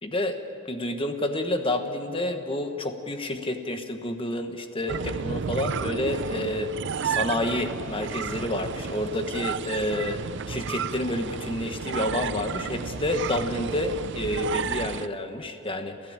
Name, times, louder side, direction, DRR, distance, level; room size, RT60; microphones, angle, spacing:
voice 1, 0.0-0.4 0.7-6.7 7.0-10.2 10.5-16.1, left 1 dB, 25° left, 7 dB, 1.2 m, -29 dB
sound 1, 4.9-15.1, right 6 dB, 55° right, 0.5 m, -32 dB
28.5 x 14.0 x 8.9 m, 2.8 s
head